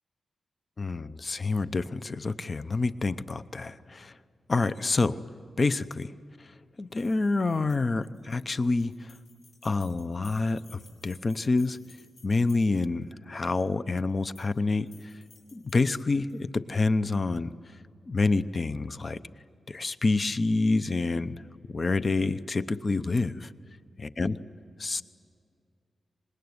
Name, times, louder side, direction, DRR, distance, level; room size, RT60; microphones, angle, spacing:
voice 1, 0.8-4.1 4.5-5.2 5.6-6.1 6.8-8.9 9.6-11.8 12.2-14.9 15.5-17.5 18.1-19.2 19.7-21.4 21.7-23.5 24.2-24.3 24.8-25.0, left 3 dB, 30° left, 13 dB, 0.7 m, -27 dB
sound 1, 6.9-13.0 14.1-14.6 14.9-16.4, left 4 dB, 75° left, 4.2 m, -57 dB
25.5 x 20.5 x 9.6 m, 2.3 s
wide cardioid pair, 135°, 0 cm